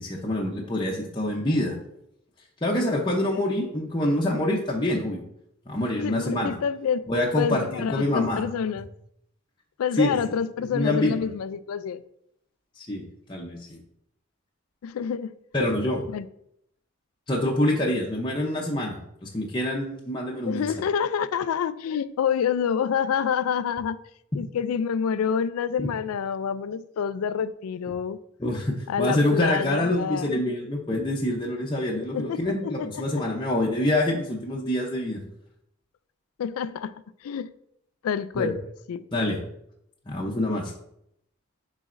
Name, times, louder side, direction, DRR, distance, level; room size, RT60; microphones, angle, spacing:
voice 1, 0.0-1.8 2.6-5.2 5.7-6.5 7.1-8.4 10.0-10.2 10.7-11.2 12.8-13.8 15.5-16.0 17.3-20.6 25.8-25.9 28.4-35.2 38.4-38.5 39.1-39.4 40.1-40.7, left 1 dB, 20° left, 0.7 m, -26 dB
voice 2, 5.9-7.1 7.4-8.9 9.8-12.0 14.8-15.3 16.1-16.3 20.5-24.0 24.3-28.2 28.9-30.5 32.1-33.0 36.4-36.9 37.2-37.5 38.0-38.6 38.9-39.0, left 7 dB, 85° left, 0.3 m, -27 dB
10.0 x 4.1 x 2.5 m
head